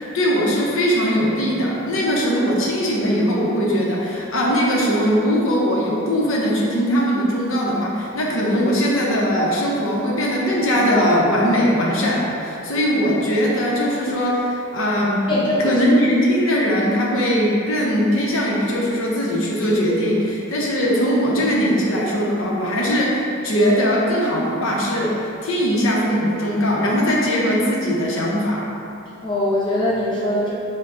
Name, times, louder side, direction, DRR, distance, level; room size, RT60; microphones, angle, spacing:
voice 1, 0.1-15.3 15.6-28.6, equal, 65° left, -3 dB, 0.8 m, -20 dB
voice 2, 15.3-15.7 29.2-30.5, left 1 dB, 20° left, -7 dB, 0.8 m, -21 dB
5.6 x 2.2 x 3.8 m, 2.7 s
head